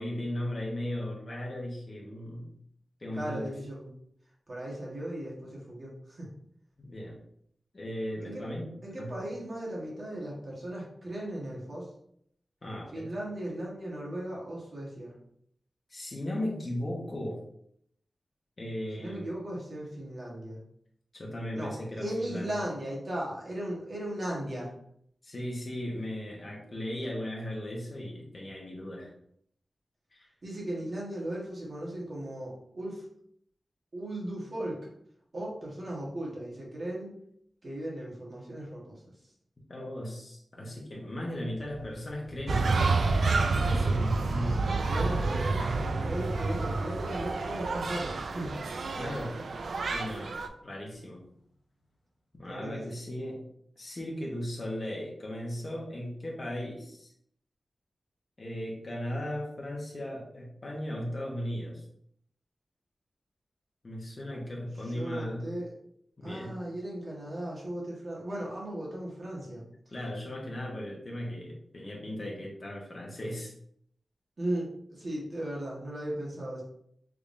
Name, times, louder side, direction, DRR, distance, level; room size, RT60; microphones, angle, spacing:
voice 1, 0.0-2.5 3.0-3.5 6.8-7.2 7.7-8.7 9.0-9.1 12.6-13.1 15.9-17.4 18.6-19.3 21.1-22.6 25.2-29.1 30.1-30.3 39.7-44.9 48.9-49.3 49.9-51.2 52.4-53.4 53.8-57.1 58.4-61.9 63.8-65.4 66.2-66.5 69.9-73.5, left 1 dB, 35° left, -2 dB, 0.9 m, -37 dB
voice 2, 3.1-3.9 4.5-6.3 8.3-8.5 8.8-11.9 12.9-15.1 19.0-20.6 21.5-24.7 30.4-33.1 33.9-34.9 35.3-37.1 37.6-39.0 44.8-48.5 52.5-53.0 64.8-65.7 66.2-69.6 74.4-76.6, right 1 dB, 40° right, -4 dB, 1.3 m, -37 dB
sound 1, 41.4-49.4 49.8-51.0, equal, 60° left, 0.8 m, -43 dB
sound 2, 42.5-50.5, right 3 dB, 75° right, 0.3 m, -29 dB
3.5 x 3.4 x 2.6 m, 0.69 s
wide cardioid pair, 140°, 0 cm